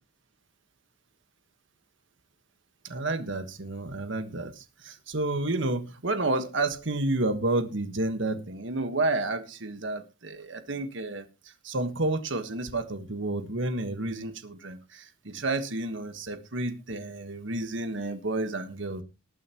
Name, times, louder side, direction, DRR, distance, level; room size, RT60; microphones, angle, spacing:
voice 1, 2.8-11.3 11.6-19.0, right 2 dB, 65° right, 1.4 m, -30 dB
19.5 x 9.1 x 3.0 m
head